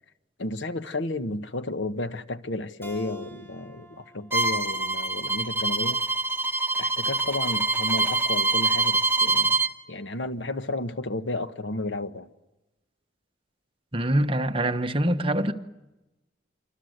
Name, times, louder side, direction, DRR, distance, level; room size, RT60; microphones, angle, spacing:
voice 1, 0.4-6.0 6.8-9.6 9.9-12.3, left 2 dB, 75° left, 1.3 m, -32 dB
Keyboard (musical), 2.8-6.1, left 1 dB, 15° left, 5.4 m, -48 dB
Bowed string instrument, 4.3-9.7, right 3 dB, 10° right, 1.2 m, -25 dB
voice 2, 13.9-15.5, right 1 dB, 30° right, 1.2 m, -24 dB
26.5 x 25.0 x 8.1 m
head